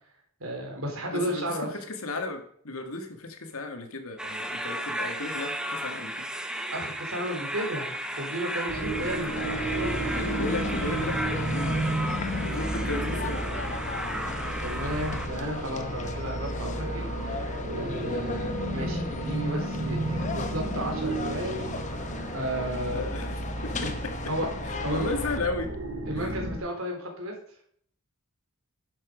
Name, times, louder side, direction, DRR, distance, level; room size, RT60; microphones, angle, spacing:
voice 1, 0.4-1.7 6.7-10.0 14.6-21.9 22.3-23.1 23.8-23.9 24.3-24.5 24.8-25.1 26.1-27.3, equal, 70° right, 1 dB, 3.8 m, -33 dB
voice 2, 1.1-6.3 8.7-9.5 10.1-12.2 12.4-13.4 22.9-24.1 24.9-25.7 26.2-26.3, left 2 dB, 80° left, 6 dB, 2.0 m, -35 dB
sound 1, 4.2-15.3, right 1 dB, 5° right, 0.9 m, -34 dB
sound 2, 8.7-26.6, right 1 dB, 90° right, 1.7 m, -33 dB
sound 3, 9.4-25.4, left 3 dB, 35° left, 1.0 m, -37 dB
11.0 x 7.4 x 5.1 m, 0.62 s
head